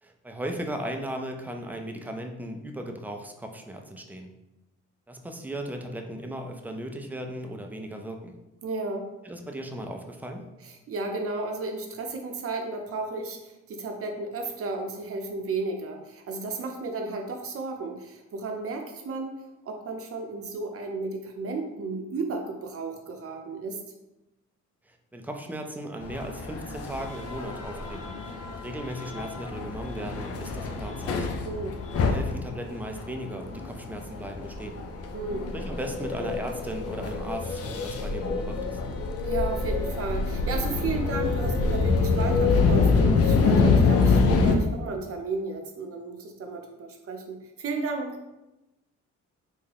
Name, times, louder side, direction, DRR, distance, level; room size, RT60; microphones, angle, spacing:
voice 1, 0.0-4.3 5.1-8.4 9.2-10.5 24.9-31.4 32.0-34.8 35.5-38.8, right 1 dB, 5° right, 3 dB, 0.3 m, -37 dB
voice 2, 8.6-9.1 10.6-19.4 19.6-23.8 31.4-31.8 35.1-35.5 39.2-48.2, right 3 dB, 50° right, 3 dB, 0.6 m, -33 dB
sound 1, 26.0-44.5, left 4 dB, 50° left, 0.5 m, -26 dB
3.5 x 2.1 x 3.3 m, 0.97 s
cardioid pair, 90°, 30 cm